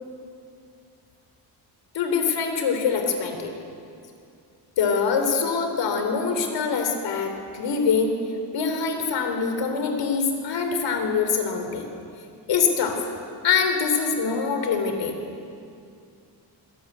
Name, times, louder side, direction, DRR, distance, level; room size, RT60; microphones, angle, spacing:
voice 1, 1.9-3.5 4.8-8.1 8.5-11.9 12.5-13.0 13.4-15.1, left 5 dB, 85° left, 5 dB, 3.7 m, -24 dB
25.5 x 17.5 x 9.3 m, 2.4 s
wide cardioid pair, 160°, 43 cm